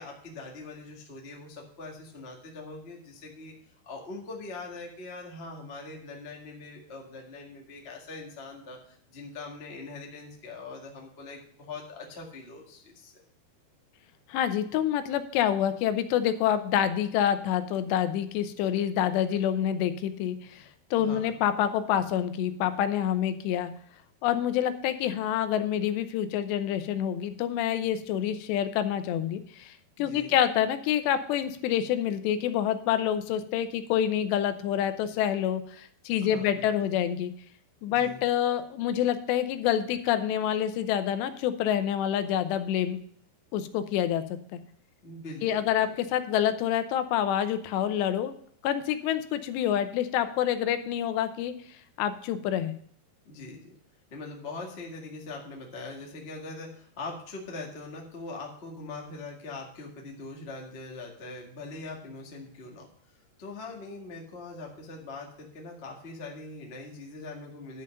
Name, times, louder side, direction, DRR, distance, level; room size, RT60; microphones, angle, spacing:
voice 1, 0.0-3.5 3.8-13.2 21.0-21.3 30.0-30.4 36.2-36.9 37.9-38.2 45.0-45.7 53.2-53.7 54.1-67.8, left 3 dB, 65° left, 0 dB, 0.6 m, -42 dB
voice 2, 14.3-20.7 20.9-23.7 24.2-37.3 37.8-43.0 43.5-44.6 45.4-48.3 48.6-51.5 52.0-52.8, left 10 dB, 85° left, 11 dB, 3.0 m, -27 dB
11.0 x 5.7 x 6.5 m, 0.62 s
omnidirectional pair, 4.9 m